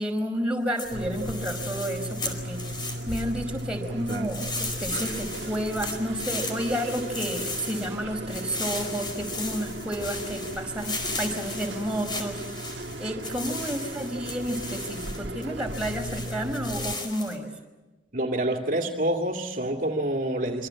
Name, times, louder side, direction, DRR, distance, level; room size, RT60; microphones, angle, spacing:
voice 1, 0.0-12.4 12.7-17.5, equal, 5° right, 0 dB, 5.2 m, -31 dB
sound 1, 0.8-3.6 4.1-17.4, left 3 dB, 25° left, 4.8 m, -36 dB
sound 2, 0.9-16.9, right 1 dB, 80° right, 1.4 m, -36 dB
voice 2, 18.1-20.7, right 1 dB, 50° right, 2 dB, 2.6 m, -27 dB
27.0 x 25.0 x 7.8 m, 1.1 s
head